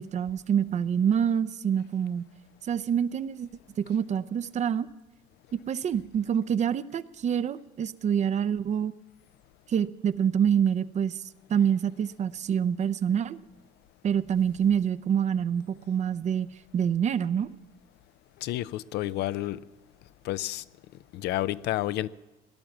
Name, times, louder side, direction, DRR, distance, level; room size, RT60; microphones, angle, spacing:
voice 1, 0.0-2.3 2.6-3.5 3.8-4.9 5.7-8.9 9.7-11.2 11.5-13.4 14.0-16.5 16.7-17.5, right 8 dB, 45° right, 0.6 m, -26 dB
voice 2, 18.4-19.6 20.2-20.6 21.1-22.1, left 15 dB, 75° left, 0.5 m, -30 dB
17.5 x 10.5 x 7.2 m
cardioid pair, 110°, 17 cm